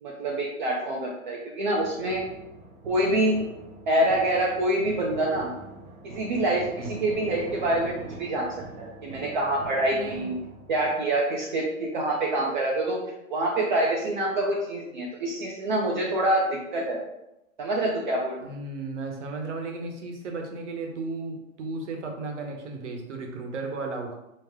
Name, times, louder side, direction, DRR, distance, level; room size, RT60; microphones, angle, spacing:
voice 1, 0.0-2.2 2.8-3.4 3.9-5.5 6.0-10.4 10.7-13.0 13.3-17.0 17.6-18.4, right 1 dB, 35° right, -3 dB, 0.5 m, -26 dB
sound 1, 1.8-10.9, right 2 dB, 80° right, 1.0 m, -43 dB
voice 2, 9.9-10.4 18.4-24.2, right 3 dB, 55° right, 2 dB, 1.1 m, -35 dB
5.5 x 2.1 x 3.5 m, 0.88 s
hypercardioid pair, 155°, 42 cm